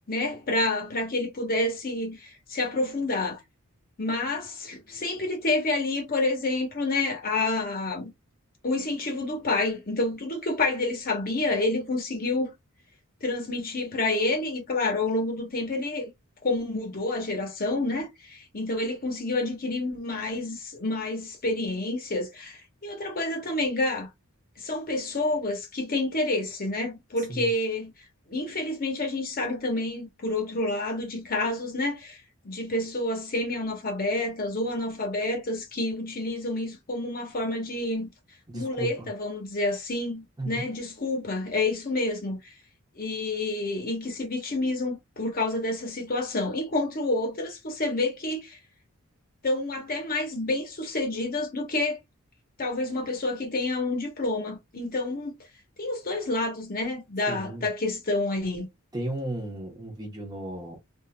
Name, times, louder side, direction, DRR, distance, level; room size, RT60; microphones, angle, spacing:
voice 1, 0.0-3.4 4.0-8.1 8.6-12.5 13.2-16.1 16.4-24.1 24.6-27.9 28.3-32.2 32.4-38.1 38.5-42.5 43.0-48.6 49.4-52.0 52.6-55.3 55.8-58.7, left 2 dB, 40° left, 1.0 m, -29 dB
voice 2, 38.5-39.1 40.4-40.6 57.3-57.6 58.9-60.8, right 1 dB, 20° right, 0.9 m, -34 dB
3.6 x 2.5 x 2.2 m
head